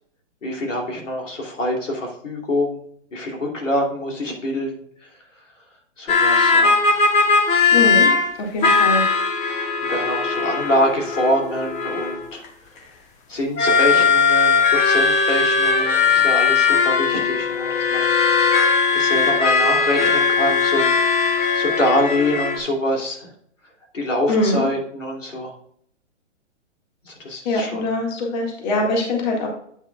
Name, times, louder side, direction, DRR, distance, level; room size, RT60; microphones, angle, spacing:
voice 1, 0.4-2.8 3.1-4.8 6.0-6.7 9.9-12.4 12.7-12.8 13.3-18.1 18.9-23.3 23.9-25.5 27.0-27.8, left 1 dB, 90° left, 0 dB, 2.8 m, -25 dB
sound 1, 6.1-8.3 8.6-12.5 13.6-22.6, left 5 dB, 20° left, 1.0 m, -18 dB
voice 2, 7.7-8.1 8.4-9.0 24.3-24.6 27.5-29.5, left 2 dB, 35° left, 0 dB, 1.9 m, -22 dB
8.5 x 7.0 x 2.3 m, 0.66 s
hypercardioid pair, 140°, 37 cm